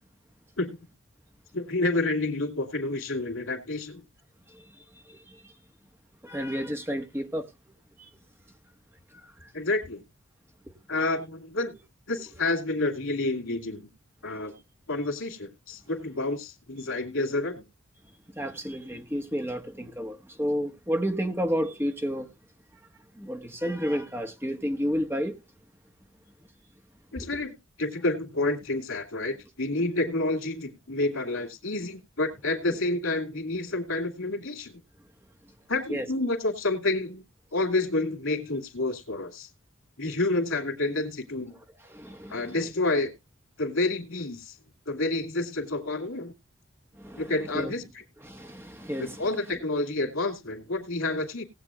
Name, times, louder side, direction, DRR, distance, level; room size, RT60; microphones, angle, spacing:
voice 1, 1.5-4.0 9.5-10.0 10.9-11.7 12.1-13.9 14.2-14.5 14.9-17.6 27.1-34.8 35.7-37.2 37.5-39.5 40.0-41.5 42.3-43.1 43.6-44.5 44.9-46.3 47.2-47.8 49.0-51.4, left 2 dB, 90° left, 2.6 m, -29 dB
voice 2, 4.5-5.5 6.2-7.5 8.0-8.1 9.1-9.5 10.6-10.7 14.2-14.3 18.3-22.3 23.1-25.4 27.2-27.3 32.7-32.8 35.9-36.1 41.8-42.6 46.9-47.7 48.2-49.3, equal, 10° right, 1.4 m, -32 dB
18.5 x 8.2 x 2.4 m
head